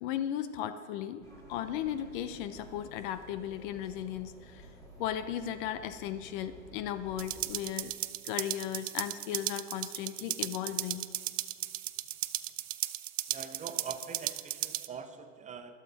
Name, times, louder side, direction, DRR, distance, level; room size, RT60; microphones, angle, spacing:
voice 1, 0.0-4.7 5.0-7.9 8.2-11.0, left 10 dB, 40° left, 12 dB, 0.7 m, -36 dB
sound 1, 1.2-7.5, right 1 dB, 10° left, 3.7 m, -53 dB
sound 2, 7.2-14.9, right 13 dB, 70° right, 0.6 m, -36 dB
voice 2, 13.3-15.7, right 6 dB, 20° right, 8 dB, 0.8 m, -43 dB
20.5 x 7.4 x 4.1 m, 2.1 s
hypercardioid pair, 105°, 39 cm